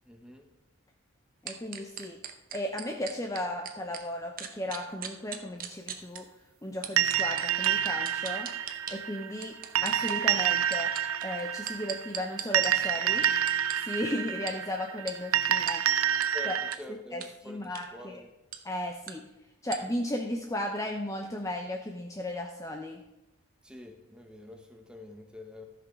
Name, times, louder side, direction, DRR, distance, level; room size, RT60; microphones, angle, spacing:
voice 1, 0.1-0.4 16.3-18.3 23.6-25.7, left 1 dB, 5° right, 5 dB, 1.0 m, -46 dB
voice 2, 1.4-2.2 2.5-6.3 6.6-8.5 8.9-9.5 9.8-10.9 11.2-13.3 13.8-15.8 16.4-16.5 16.9-18.2 18.6-19.2 19.6-23.0, left 1 dB, 15° left, 3 dB, 0.6 m, -35 dB
sound 1, 1.5-4.0 4.4-6.2 6.8-9.0 9.4-10.2 10.6-12.7 13.2-13.7 14.5-14.6 15.1-15.2 15.7-15.8 16.2-16.3 16.7-16.8 17.2-17.3 17.6-17.8 18.5-18.6 19.1-19.2 19.7-19.8, right 9 dB, 40° right, 0.8 m, -38 dB
sound 2, 7.0-16.8, right 10 dB, 75° right, 0.5 m, -28 dB
13.5 x 6.0 x 5.1 m, 0.98 s
head